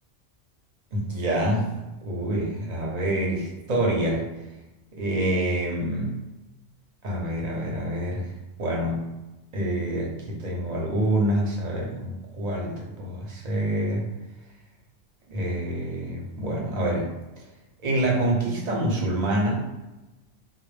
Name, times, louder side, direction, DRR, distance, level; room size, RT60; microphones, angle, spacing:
voice 1, 0.9-1.7 2.0-4.3 4.9-6.2 7.0-8.3 8.6-9.1 9.5-14.1 15.3-17.1 17.8-19.6, right 1 dB, 45° right, -2 dB, 0.6 m, -26 dB
2.1 x 2.0 x 3.2 m, 1.1 s
omnidirectional pair, 1.2 m